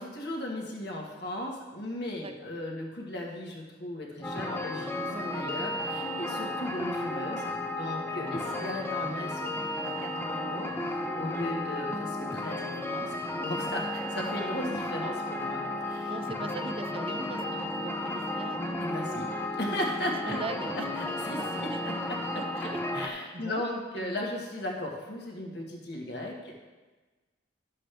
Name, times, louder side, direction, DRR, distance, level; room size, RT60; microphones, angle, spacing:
voice 1, 0.0-9.5 10.0-16.1 18.8-20.4 20.7-22.2 22.5-26.6, left 1 dB, 60° left, 0 dB, 1.6 m, -37 dB
sound 1, 4.2-23.1, left 1 dB, 10° left, 0.6 m, -33 dB
voice 2, 5.1-5.4 6.2-6.5 8.4-8.7 16.1-18.8 20.0-20.9 21.7-21.8 22.4-22.8 23.3-23.6 24.0-24.3, right 3 dB, 30° right, 8 dB, 0.5 m, -41 dB
11.5 x 7.5 x 3.4 m, 1.2 s
head